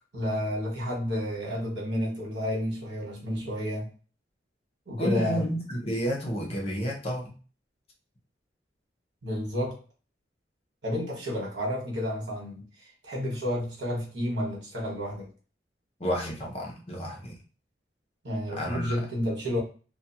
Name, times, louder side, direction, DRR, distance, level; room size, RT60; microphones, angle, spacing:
voice 1, 0.1-3.9 4.9-5.5 9.2-9.8 10.8-12.7 13.0-15.3 18.2-19.6, left 1 dB, 85° right, -2 dB, 1.2 m, -30 dB
voice 2, 5.0-7.3 16.0-17.4 18.6-18.9, equal, 35° left, -1 dB, 0.7 m, -30 dB
2.4 x 2.2 x 2.8 m, 0.36 s
head